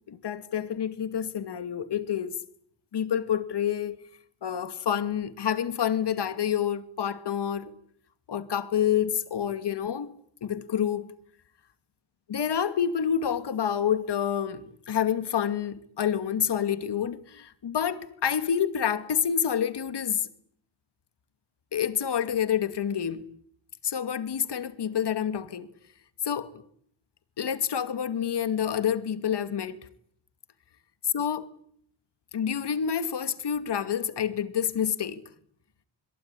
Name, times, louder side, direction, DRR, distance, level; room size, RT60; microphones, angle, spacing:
voice 1, 0.1-2.3 2.9-4.0 4.4-7.7 8.3-10.1 10.4-11.1 12.3-20.3 21.7-23.2 23.8-25.7 26.2-26.6 27.4-29.8 31.0-31.5 32.3-35.2, left 8 dB, 55° left, 2.5 m, -28 dB
26.0 x 22.5 x 9.9 m
cardioid pair, 100°, 48 cm